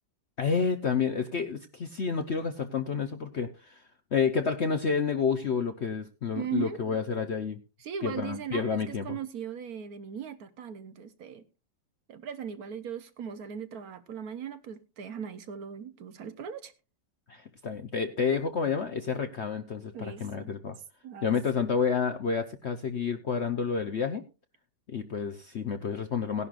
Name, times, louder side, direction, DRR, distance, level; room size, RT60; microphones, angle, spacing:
voice 1, 0.4-3.8 4.1-7.6 8.0-9.2 17.3-20.8 21.2-24.2 24.9-26.5, left 6 dB, 55° left, 0.8 m, -29 dB
voice 2, 6.3-6.8 7.8-11.4 12.1-16.7 19.9-20.5 21.0-21.3, right 8 dB, 60° right, 1.2 m, -38 dB
17.5 x 11.0 x 2.5 m
omnidirectional pair, 1.9 m